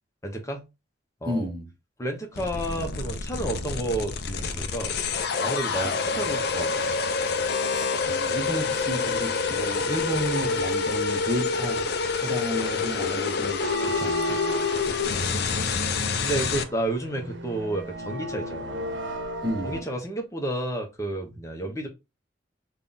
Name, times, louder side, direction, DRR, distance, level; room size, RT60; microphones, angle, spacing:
voice 1, 0.2-0.6 1.2-1.5 2.0-5.0 5.4-6.9 15.1-15.6 16.2-19.0 19.6-21.9, right 1 dB, 15° left, 0.8 m, -31 dB
voice 2, 1.3-1.7 5.8-6.2 7.7-14.4 19.4-19.8, right 1 dB, 20° right, 0.8 m, -32 dB
sound 1, 2.4-16.6, left 5 dB, 55° left, 0.5 m, -27 dB
sound 2, 13.6-19.8, equal, 70° right, 0.8 m, -33 dB
3.6 x 2.3 x 3.9 m
head